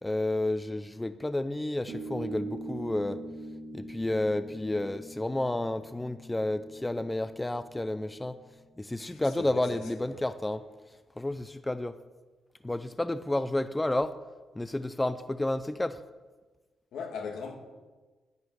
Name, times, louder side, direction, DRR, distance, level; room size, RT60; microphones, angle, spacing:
voice 1, 0.0-3.2 3.7-8.4 8.8-10.6 11.2-11.9 12.6-14.1 14.6-16.0, left 1 dB, 10° left, 0.4 m, -31 dB
sound 1, 1.9-8.8, right 2 dB, 50° right, 2.1 m, -43 dB
voice 2, 9.0-10.2 16.9-17.6, left 5 dB, 80° left, 2.3 m, -39 dB
10.5 x 10.0 x 9.7 m
wide cardioid pair, 170°, 0 cm